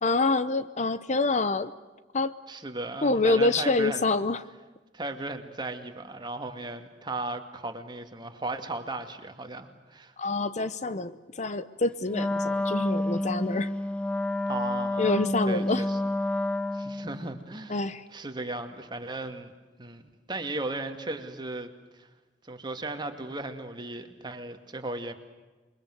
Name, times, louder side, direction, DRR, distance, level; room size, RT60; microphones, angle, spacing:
voice 1, 0.0-1.7 2.1-2.4 3.0-4.4 10.2-13.7 15.0-15.9 17.7-18.0, left 3 dB, 40° left, 14 dB, 0.8 m, -26 dB
voice 2, 2.5-4.0 4.9-10.1 14.5-15.1 15.5-16.0 16.7-17.8 18.1-19.5 19.8-21.7 22.0-22.1 22.5-25.1, right 2 dB, 25° right, 6 dB, 2.3 m, -36 dB
Wind instrument woodwind instrument, 12.1-17.2, left 1 dB, 5° left, 0.7 m, -29 dB
28.0 x 22.5 x 7.9 m, 1.2 s
head